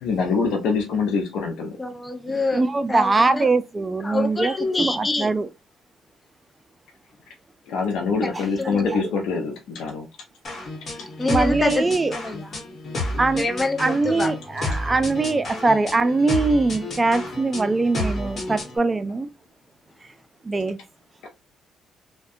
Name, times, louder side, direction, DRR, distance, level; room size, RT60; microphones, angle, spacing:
voice 1, 0.0-1.8 2.3-2.4 7.7-10.1 11.0-11.1 12.8-13.2 21.2-21.3, left 5 dB, 85° left, 0.4 m, -25 dB
voice 2, 1.8-2.6 2.9-3.5 4.0-5.3 8.2-8.3 8.6-9.0 11.2-12.6 13.3-14.3, left 2 dB, 20° left, 0.6 m, -26 dB
voice 3, 2.5-5.5 8.3-8.4 11.3-12.2 13.2-13.5 13.8-19.3 20.4-20.8, right 3 dB, 25° right, 0.3 m, -22 dB
sound 1, 10.4-18.8, left 2 dB, 50° left, 1.1 m, -31 dB
2.6 x 2.1 x 2.4 m
cardioid pair, 90°, 0 cm